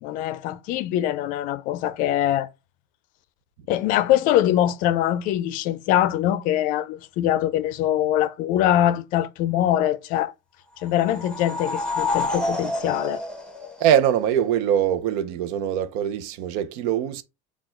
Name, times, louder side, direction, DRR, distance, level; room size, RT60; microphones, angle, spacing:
voice 1, 0.0-2.5 3.7-10.3 10.8-13.2, left 12 dB, 65° left, 0.4 m, -23 dB
sound 1, 10.8-14.4, left 2 dB, 5° left, 1.2 m, -29 dB
voice 2, 13.8-17.2, right 10 dB, 80° right, 0.6 m, -22 dB
4.4 x 2.4 x 4.3 m
cardioid pair, 145°, 15 cm